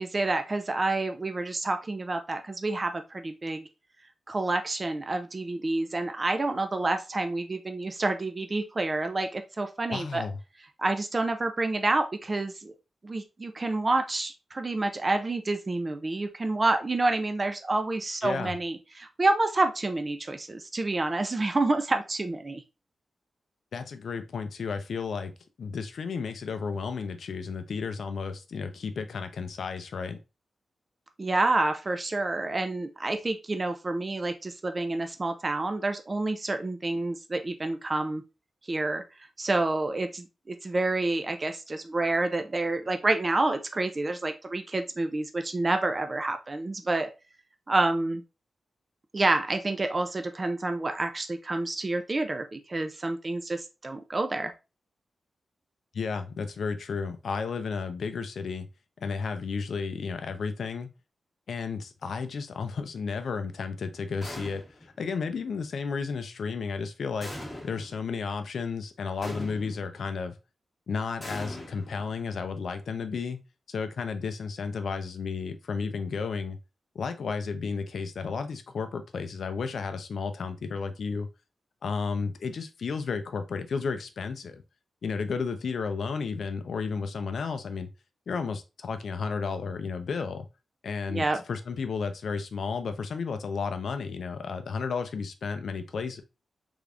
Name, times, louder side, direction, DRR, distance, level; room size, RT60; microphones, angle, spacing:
voice 1, 0.0-3.6 4.3-10.3 10.8-12.7 13.0-22.6 31.2-38.2 38.7-39.0 39.4-47.1 47.7-48.2 49.1-54.5 91.1-91.4, right 2 dB, 25° right, 7 dB, 0.4 m, -28 dB
voice 2, 9.9-10.4 18.2-18.5 23.7-25.3 25.6-30.2 55.9-58.7 59.0-60.9 61.5-67.3 67.6-70.4 70.9-73.4 73.7-76.6 76.9-81.3 81.8-84.6 85.0-87.9 88.3-90.5 90.8-96.2, left 5 dB, 65° left, 9 dB, 0.5 m, -33 dB
sound 1, 64.2-65.0 67.2-68.0 69.2-70.0 71.2-72.4, left 1 dB, 10° left, 1.1 m, -41 dB
3.5 x 3.4 x 2.5 m, 0.28 s
wide cardioid pair, 170°, 0 cm